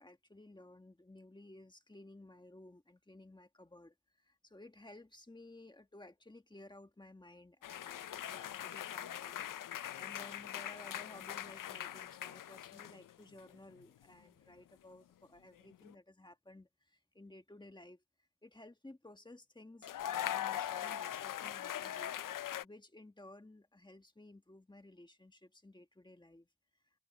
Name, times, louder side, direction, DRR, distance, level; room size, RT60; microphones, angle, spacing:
voice 1, 0.0-18.0 18.4-22.2 22.6-26.5, left 2 dB, 10° left, 1.4 m, -56 dB
sound 1, 7.6-13.1 13.4-13.8 15.7-15.9 19.8-22.6, left 11 dB, 60° left, 0.5 m, -41 dB
open air
wide cardioid pair, 140°, 38 cm